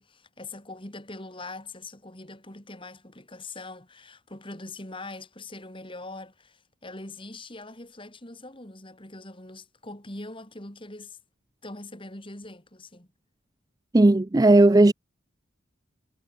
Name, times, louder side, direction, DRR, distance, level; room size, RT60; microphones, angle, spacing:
voice 1, 0.0-11.2 11.6-13.1, left 2 dB, 25° left, 3.5 m, -42 dB
voice 2, 13.9-14.9, right 2 dB, 20° right, 0.4 m, -16 dB
head